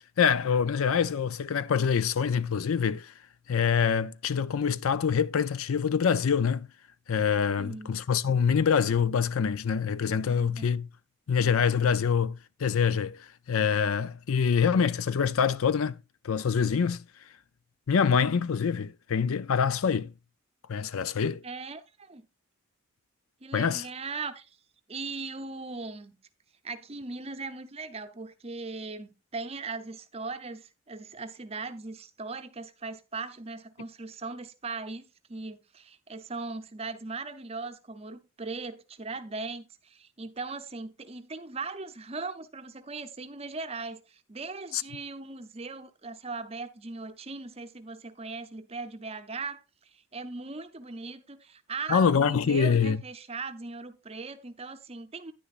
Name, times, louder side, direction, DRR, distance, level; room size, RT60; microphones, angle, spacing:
voice 1, 0.2-3.1 3.5-6.7 7.1-10.9 11.3-13.2 13.5-15.9 16.2-17.0 17.9-20.1 20.7-21.4 23.5-23.8 51.9-53.0, left 6 dB, 75° left, 0.5 m, -25 dB
voice 2, 7.6-8.0 10.3-10.7 21.4-22.2 23.4-24.6 24.9-26.2 26.6-55.3, right 3 dB, 30° right, 0.7 m, -39 dB
10.0 x 9.9 x 2.5 m
head